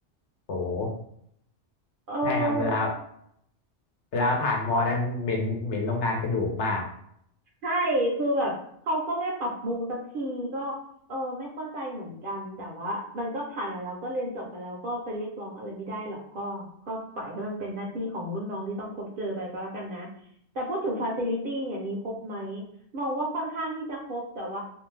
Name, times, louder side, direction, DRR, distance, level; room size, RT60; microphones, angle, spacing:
voice 1, 0.5-0.9 2.2-2.9 4.1-6.8, left 2 dB, 75° left, 0 dB, 1.0 m, -27 dB
voice 2, 2.1-2.7 7.6-8.6 8.9-10.8 11.1-20.1 20.5-22.6 22.9-24.6, right 1 dB, 55° right, -1 dB, 0.7 m, -31 dB
2.5 x 2.2 x 3.1 m, 0.70 s
omnidirectional pair, 1.2 m